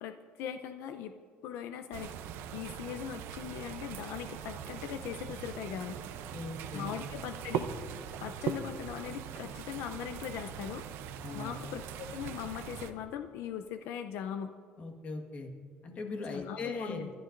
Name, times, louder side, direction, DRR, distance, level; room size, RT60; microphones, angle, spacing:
voice 1, 0.0-1.1 1.4-2.1 2.5-6.0 6.7-7.7 8.2-10.8 11.3-14.5 16.3-17.1, left 9 dB, 80° left, 8 dB, 0.6 m, -40 dB
sound 1, 1.9-12.9, right 8 dB, 80° right, 0.7 m, -41 dB
voice 2, 6.3-7.0 11.2-11.5 14.8-15.5 15.8-17.1, left 3 dB, 35° left, 3 dB, 1.6 m, -39 dB
26.5 x 12.0 x 2.6 m, 2.1 s
cardioid pair, 150°, 4 cm